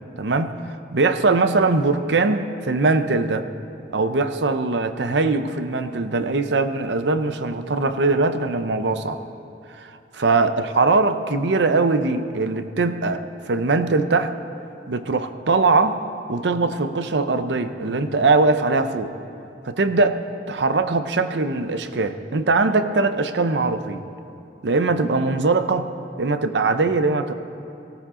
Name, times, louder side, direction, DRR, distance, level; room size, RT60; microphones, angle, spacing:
voice 1, 0.2-0.5 0.9-3.5 3.9-9.2 9.8-14.3 14.9-16.0 16.3-19.1 19.7-20.2 20.5-24.0 24.6-25.9 26.2-27.3, right 3 dB, 70° right, 10 dB, 0.7 m, -21 dB
18.5 x 14.5 x 3.8 m, 2.7 s
head